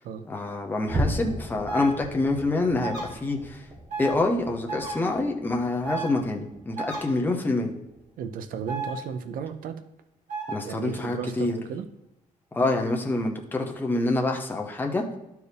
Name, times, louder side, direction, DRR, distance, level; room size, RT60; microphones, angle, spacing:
voice 1, 0.3-3.6 4.0-7.7 10.5-11.6 12.5-15.0, left 2 dB, 15° left, 1 dB, 0.8 m, -26 dB
sound 1, 0.8-7.5 7.9-8.2 8.6-8.7 9.3-9.4, equal, 30° right, 1.4 m, -36 dB
sound 2, 1.7-1.9 2.8-3.0 3.9-4.1 4.7-4.9 5.8-6.1 6.8-7.0 8.7-8.9 10.3-10.5, right 3 dB, 60° right, 3.0 m, -32 dB
voice 2, 8.2-9.8 10.6-11.9, right 7 dB, 85° right, 10 dB, 0.6 m, -34 dB
12.0 x 4.6 x 3.4 m, 0.90 s
cardioid pair, 150°, 14 cm